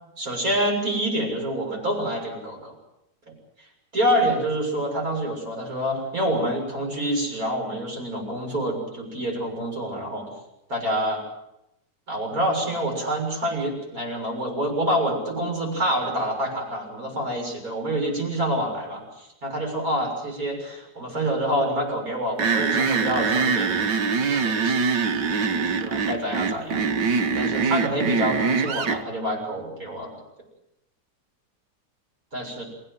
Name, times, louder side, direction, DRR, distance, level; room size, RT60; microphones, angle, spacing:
voice 1, 0.2-2.7 3.6-3.7 3.9-10.3 10.7-11.2 12.1-23.9 24.3-24.8 25.3-26.9 27.3-30.2 32.3-32.6, right 1 dB, 55° right, 1 dB, 7.3 m, -27 dB
sound 1, 22.4-29.0, right 5 dB, 85° right, 2.0 m, -23 dB
29.0 x 16.0 x 7.7 m, 0.86 s
omnidirectional pair, 1.8 m